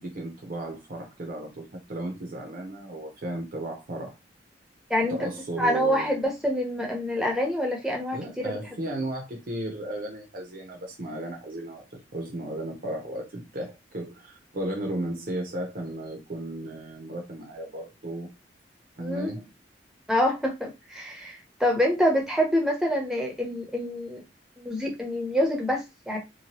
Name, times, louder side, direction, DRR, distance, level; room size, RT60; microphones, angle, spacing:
voice 1, 0.0-4.1 5.0-6.2 8.1-18.3 19.0-19.5, right 1 dB, 55° right, 0.7 m, -35 dB
voice 2, 4.9-5.3 5.6-8.5 19.0-19.3 20.1-24.2 24.6-26.2, equal, 5° right, 0.7 m, -26 dB
2.8 x 2.2 x 2.9 m
head